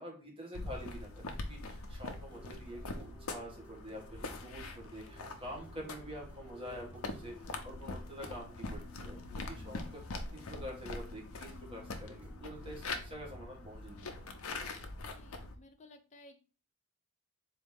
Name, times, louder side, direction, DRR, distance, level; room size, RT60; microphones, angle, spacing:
voice 1, 0.0-10.0 10.3-14.3, equal, 25° right, -1 dB, 1.4 m, -47 dB
sound 1, 0.5-15.6, left 3 dB, 85° left, 0.6 m, -43 dB
sound 2, 2.3-12.9, left 2 dB, 5° right, 0.5 m, -57 dB
voice 2, 15.0-16.4, left 2 dB, 35° left, 3 dB, 0.6 m, -57 dB
4.1 x 2.7 x 3.5 m, 0.36 s
head